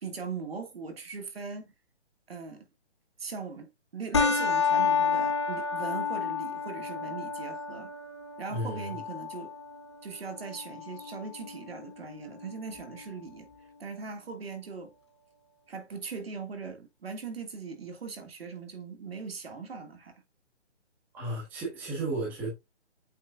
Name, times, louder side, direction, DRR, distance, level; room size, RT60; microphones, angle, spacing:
voice 1, 0.0-1.7 2.3-2.7 3.2-7.9 8.4-9.5 10.0-13.5 13.8-14.9 15.7-20.1, right 5 dB, 55° right, 1.9 m, -40 dB
sound 1, 4.1-13.1, left 5 dB, 25° left, 0.8 m, -31 dB
voice 2, 8.5-9.0 21.1-22.5, right 2 dB, 5° right, 1.4 m, -33 dB
8.4 x 5.2 x 2.3 m
hypercardioid pair, 175°, 35 cm